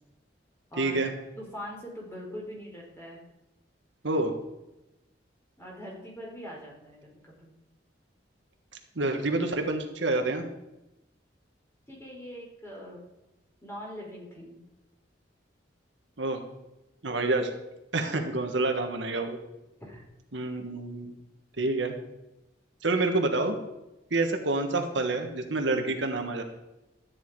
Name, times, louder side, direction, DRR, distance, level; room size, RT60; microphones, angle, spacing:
voice 1, 0.8-1.1 4.0-4.3 8.9-10.4 16.2-16.4 17.0-17.5 17.9-19.4 20.3-21.2 21.6-21.9 22.8-23.6 24.1-26.4, right 2 dB, 80° right, 5 dB, 1.5 m, -28 dB
voice 2, 1.4-3.2 5.6-7.5 11.9-13.0 13.6-14.6 19.8-20.0, equal, 15° left, -2 dB, 3.7 m, -42 dB
13.0 x 9.5 x 4.7 m, 0.95 s
head